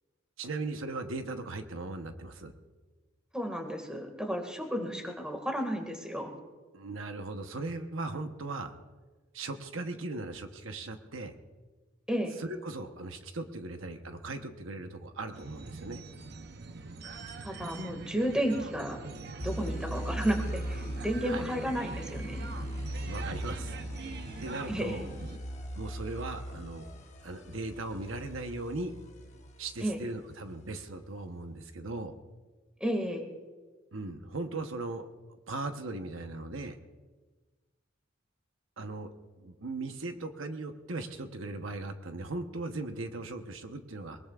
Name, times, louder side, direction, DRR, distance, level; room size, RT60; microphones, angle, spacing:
voice 1, 0.4-2.5 6.7-8.7 9.3-11.3 12.4-16.0 21.2-21.4 23.0-23.7 24.4-25.1 25.7-26.9 27.2-29.0 29.6-32.1 33.9-35.1 35.5-36.8 38.8-39.1 39.4-44.2, right 2 dB, 90° right, 6 dB, 1.0 m, -38 dB
voice 2, 3.3-6.4 12.1-12.3 17.4-19.0 19.4-22.5 24.7-25.0 29.8-30.0 32.8-33.2, equal, 5° right, 3 dB, 1.9 m, -32 dB
sound 1, 15.3-25.4, right 4 dB, 55° right, 0.7 m, -43 dB
sound 2, 19.4-29.9, equal, 35° left, 1.2 m, -39 dB
22.0 x 20.5 x 2.4 m, 1.3 s
head